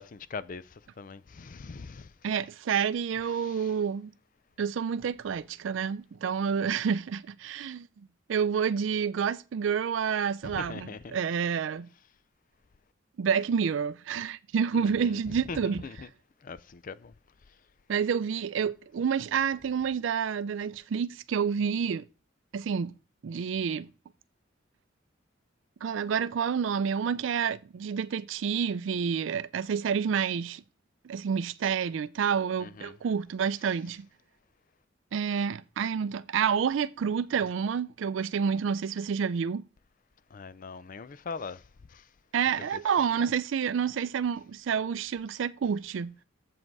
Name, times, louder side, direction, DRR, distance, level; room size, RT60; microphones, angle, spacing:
voice 1, 0.0-2.1 3.4-3.7 10.4-11.2 14.7-16.1 16.4-17.1 32.6-32.9 40.3-41.6 41.9-42.1 42.7-42.8, left 4 dB, 45° left, 0.4 m, -41 dB
voice 2, 2.2-4.1 4.6-7.9 8.3-11.9 13.2-15.8 17.9-22.0 22.5-22.9 23.2-23.9 25.8-30.6 31.0-34.1 35.1-39.6 42.3-46.1, right 7 dB, 70° right, 0.4 m, -29 dB
7.6 x 7.5 x 4.6 m
head